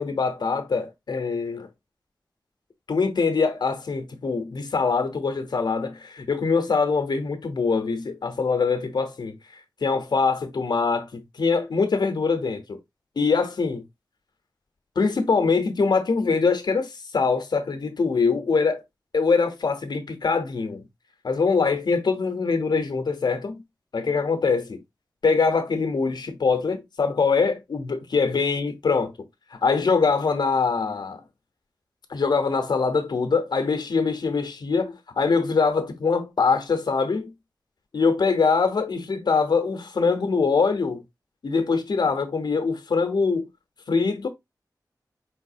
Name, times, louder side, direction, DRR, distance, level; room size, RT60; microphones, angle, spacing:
voice 1, 0.0-1.7 2.9-9.4 9.8-12.8 13.2-13.8 15.0-18.8 19.1-20.8 21.2-23.6 23.9-24.8 25.2-29.1 29.5-31.2 32.1-37.3 37.9-41.0 41.4-43.5 43.9-44.3, left 4 dB, 80° left, 1.0 m, -23 dB
4.9 x 3.9 x 2.7 m
wide cardioid pair, 95°, 7 cm